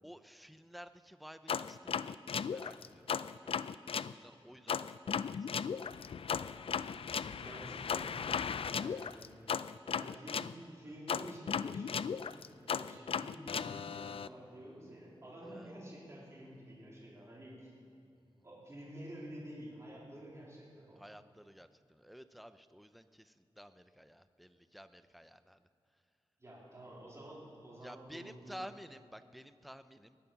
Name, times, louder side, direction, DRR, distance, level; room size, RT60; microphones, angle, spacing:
voice 1, 0.0-4.9 5.2-6.4 8.8-8.9 10.4-10.5 15.5-15.7 18.4-18.5 21.0-25.7 27.8-30.2, equal, ahead, 11 dB, 0.5 m, -53 dB
sound 1, 1.5-4.1 4.7-10.5 11.1-14.3, left 7 dB, 70° left, 0.4 m, -36 dB
voice 2, 6.8-8.4 8.7-9.4 9.9-17.7 18.4-21.0 26.4-28.7, right 1 dB, 30° right, -5 dB, 3.7 m, -50 dB
19.0 x 12.5 x 5.9 m, 2.6 s
wide cardioid pair, 125°, 10 cm